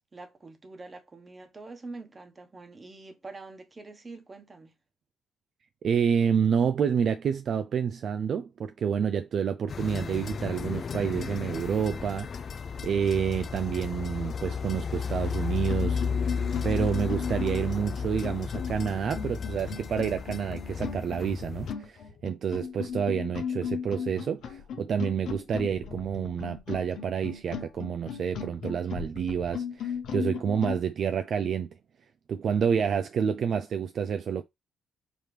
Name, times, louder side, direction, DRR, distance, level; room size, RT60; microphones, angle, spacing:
voice 1, 0.1-4.7, right 3 dB, 30° right, 1.1 m, -45 dB
voice 2, 5.8-31.7 32.3-34.4, right 7 dB, 60° right, 0.4 m, -29 dB
sound 1, 9.7-21.7, left 6 dB, 45° left, 0.3 m, -33 dB
sound 2, 15.7-30.8, left 7 dB, 75° left, 0.8 m, -36 dB
5.2 x 2.8 x 3.2 m
cardioid pair, 90°, 0 cm